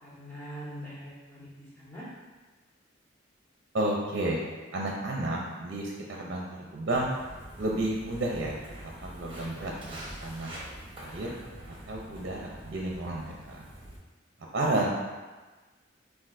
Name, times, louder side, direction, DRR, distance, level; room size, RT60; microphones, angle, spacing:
voice 1, 0.0-2.1, equal, 10° left, -10 dB, 1.4 m, -43 dB
voice 2, 3.7-7.1 7.6-8.6 9.0-10.6 11.0-11.3 11.9-13.6 14.5-14.9, right 1 dB, 55° right, -2 dB, 0.5 m, -31 dB
Walk footsteps, 6.9-14.0, right 1 dB, 25° right, 0.8 m, -45 dB
7.4 x 2.5 x 2.5 m, 1.3 s
head